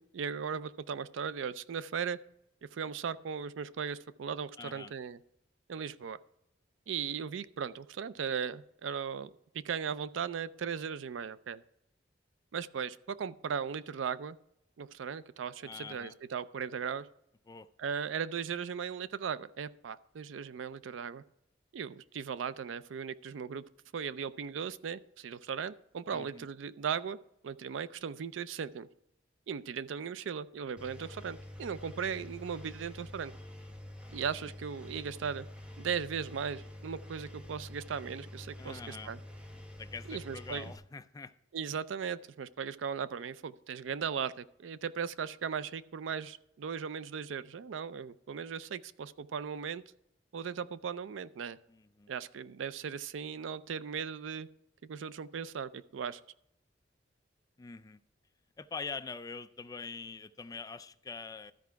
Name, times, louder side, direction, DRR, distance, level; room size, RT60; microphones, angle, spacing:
voice 1, 0.0-2.2 2.7-5.2 5.7-6.2 6.9-9.3 9.6-11.6 12.5-14.4 14.8-17.1 17.8-21.2 21.7-23.6 23.9-27.2 27.4-28.9 29.5-33.3 34.1-35.5 35.8-39.2 40.1-40.6 41.5-49.8 50.3-51.6 52.1-54.5 54.8-56.2, right 7 dB, 90° right, 0.4 m, -37 dB
voice 2, 4.6-4.9 15.6-16.2 17.5-17.7 26.1-26.5 38.6-39.1 39.8-41.3 51.7-52.1 57.6-58.0 58.6-61.5, left 4 dB, 20° left, 0.3 m, -44 dB
Engine, 30.8-40.8, left 1 dB, 5° right, 0.8 m, -47 dB
13.0 x 4.7 x 4.6 m
head